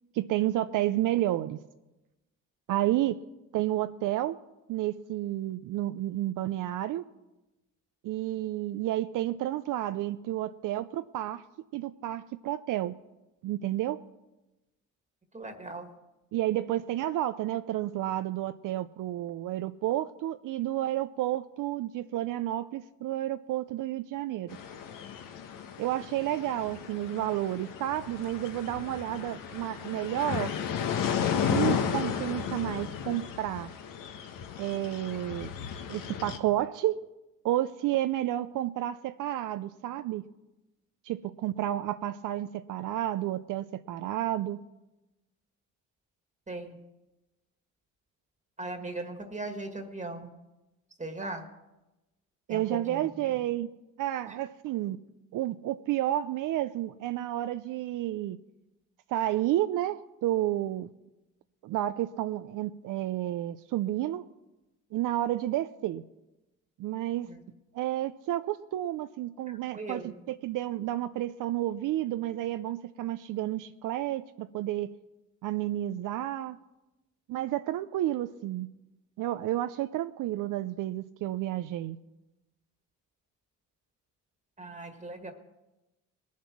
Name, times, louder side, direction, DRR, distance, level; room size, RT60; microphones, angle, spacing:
voice 1, 0.1-1.6 2.7-3.2 3.5-4.4 4.7-7.1 8.0-11.4 11.7-13.0 13.4-14.0 16.3-24.6 25.8-30.5 31.5-33.7 34.6-35.5 35.9-37.0 37.4-40.2 41.0-44.6 52.5-53.7 54.0-55.0 55.3-58.4 59.1-60.9 61.6-64.3 64.9-66.0 66.8-67.3 67.7-74.9 75.4-76.6 77.3-78.7 79.2-82.0, right 14 dB, 70° right, 11 dB, 0.6 m, -31 dB
voice 2, 15.3-15.9 46.5-46.8 48.6-50.3 51.0-51.4 52.5-53.3 54.3-54.4 67.3-67.4 69.7-70.1 84.6-85.3, right 2 dB, 20° right, 5 dB, 1.7 m, -39 dB
sound 1, 24.5-36.4, left 7 dB, 70° left, 1.5 m, -34 dB
20.0 x 7.4 x 5.9 m, 1.0 s
cardioid pair, 85°, 33 cm